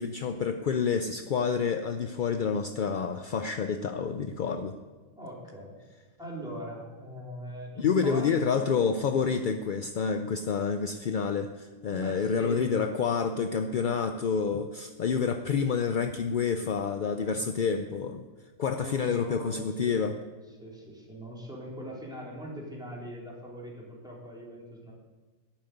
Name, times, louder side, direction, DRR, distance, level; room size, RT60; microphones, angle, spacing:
voice 1, 0.0-4.8 7.8-18.3 18.6-20.2, left 6 dB, 55° left, 7 dB, 0.5 m, -28 dB
voice 2, 5.2-5.7 6.2-8.7 9.3-9.4 11.9-13.0 17.2-17.6 18.7-20.1 20.6-24.9, equal, 5° right, -5 dB, 3.7 m, -41 dB
12.0 x 7.5 x 9.4 m, 1.3 s
omnidirectional pair, 1.4 m